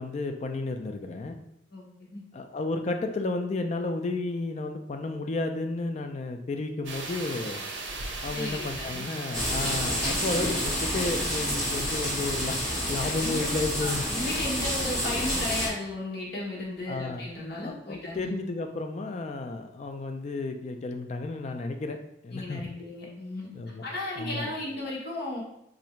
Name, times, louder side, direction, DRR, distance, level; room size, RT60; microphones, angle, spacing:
voice 1, 0.0-1.4 2.3-7.6 8.2-12.6 12.9-14.0 16.9-17.3 17.6-22.0 22.2-22.6 23.5-23.9 24.2-24.5, left 3 dB, 35° left, 6 dB, 0.3 m, -32 dB
voice 2, 1.7-2.2 8.3-9.1 13.2-13.4 13.8-18.3 22.3-23.5 23.8-25.4, left 2 dB, 55° left, -4 dB, 1.0 m, -35 dB
sound 1, 6.8-14.2, right 3 dB, 70° right, 0.7 m, -39 dB
sound 2, 9.3-15.7, equal, 5° left, 1.5 m, -29 dB
2.8 x 2.6 x 4.3 m, 0.81 s
head